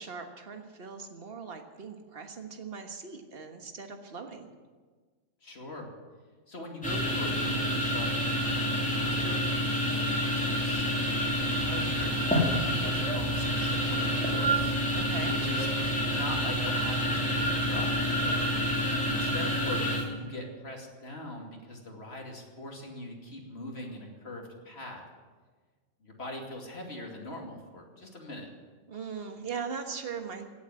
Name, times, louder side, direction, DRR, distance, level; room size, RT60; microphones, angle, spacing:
voice 1, 0.0-4.5 14.9-15.3 18.2-18.6 28.9-30.5, right 5 dB, 50° right, 5 dB, 1.6 m, -40 dB
voice 2, 5.4-5.9 6.5-11.1 11.4-14.7 15.3-15.7 16.1-18.0 19.1-25.1 26.0-28.5, left 1 dB, 55° left, 1 dB, 2.9 m, -42 dB
sound 1, 6.8-20.1, equal, 5° left, 2.9 m, -28 dB
sound 2, 11.2-18.9, left 2 dB, 30° right, 2.6 m, -45 dB
17.0 x 8.2 x 9.9 m, 1.4 s
omnidirectional pair, 1.3 m